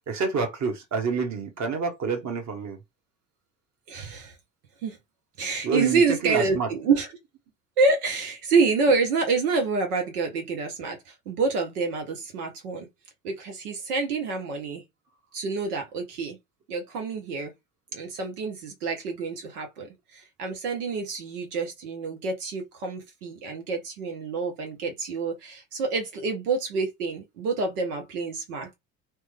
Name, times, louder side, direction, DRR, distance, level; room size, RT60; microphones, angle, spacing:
voice 1, 0.1-2.8 5.6-6.7, right 5 dB, 40° right, 1.3 m, -28 dB
voice 2, 3.9-4.4 4.8-5.0 5.4-7.1 7.8-12.9 13.2-14.8 15.3-16.4 16.7-17.5 17.9-28.8, right 4 dB, 85° right, 0.8 m, -27 dB
3.1 x 2.2 x 3.2 m
hypercardioid pair, 65°, 44 cm